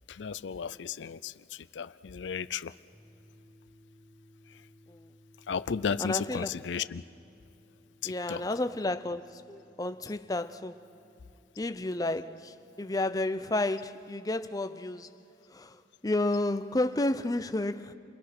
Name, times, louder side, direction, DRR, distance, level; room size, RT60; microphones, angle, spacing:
voice 1, 0.1-2.7 5.5-7.0 8.0-8.4, left 6 dB, 90° left, 0.5 m, -34 dB
sound 1, 2.9-13.8, left 1 dB, ahead, 7.5 m, -61 dB
voice 2, 6.0-6.5 8.0-10.9 11.6-15.1 15.5-17.9, left 2 dB, 20° left, 0.6 m, -31 dB
29.0 x 21.0 x 6.0 m
head